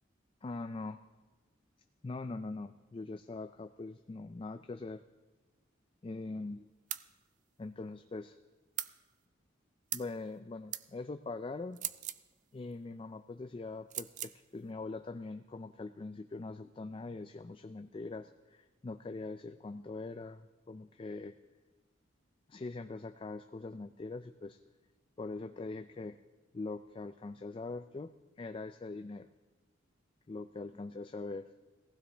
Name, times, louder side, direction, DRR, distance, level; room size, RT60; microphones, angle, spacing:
voice 1, 0.4-1.0 2.0-5.0 6.0-6.7 7.6-8.4 9.9-11.8 12.5-21.4 22.5-24.6 25.2-26.2 26.5-28.1 28.4-29.3 30.3-31.5, left 3 dB, 25° left, 9 dB, 0.3 m, -42 dB
sound 1, 6.9-7.1 8.8-9.0 9.9-10.1 10.7-10.9 11.7-12.3 13.9-14.4, right 12 dB, 40° right, 0.4 m, -39 dB
18.0 x 15.5 x 3.4 m, 1.2 s
head